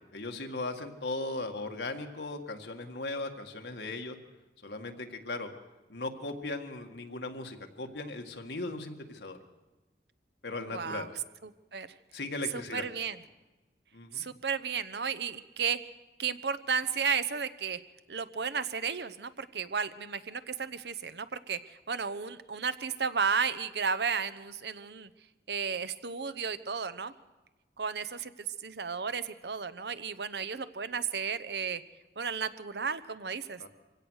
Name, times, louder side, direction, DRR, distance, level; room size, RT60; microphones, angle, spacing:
voice 1, 0.1-4.2 4.6-5.5 5.9-9.4 10.4-11.1 12.1-12.8 13.9-14.2 33.6-33.7, left 2 dB, 75° left, 4 dB, 1.9 m, -38 dB
voice 2, 10.7-11.1 11.4-11.9 12.5-13.2 14.1-15.8 16.2-17.8 18.1-25.1 25.5-27.1 27.8-28.3 28.6-31.8 32.2-33.7, right 6 dB, 75° right, 13 dB, 0.9 m, -33 dB
24.0 x 17.0 x 6.5 m, 1.1 s
head